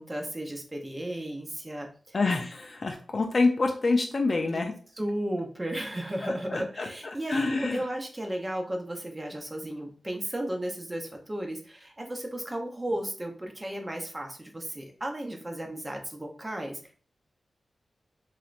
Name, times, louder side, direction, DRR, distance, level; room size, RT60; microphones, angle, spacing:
voice 1, 0.0-2.2 4.5-4.6 5.0-16.9, right 1 dB, 20° right, 2 dB, 0.6 m, -34 dB
voice 2, 2.1-4.7 6.2-6.9 7.3-7.8, left 3 dB, 50° left, 3 dB, 0.4 m, -27 dB
3.1 x 2.9 x 2.5 m, 0.41 s
wide cardioid pair, 100°, 0 cm